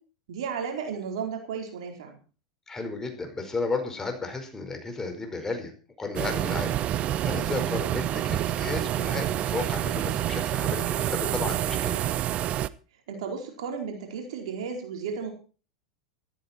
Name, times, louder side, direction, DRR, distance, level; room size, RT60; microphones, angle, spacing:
voice 1, 0.3-2.2 13.1-15.3, right 6 dB, 65° right, 3 dB, 4.3 m, -34 dB
voice 2, 2.7-5.7 6.0-6.7 7.2-12.0, left 3 dB, 15° left, 5 dB, 5.0 m, -33 dB
sound 1, 6.2-12.7, right 12 dB, 40° right, 0.8 m, -28 dB
14.0 x 14.0 x 4.5 m, 0.37 s
hypercardioid pair, 90°, 3 cm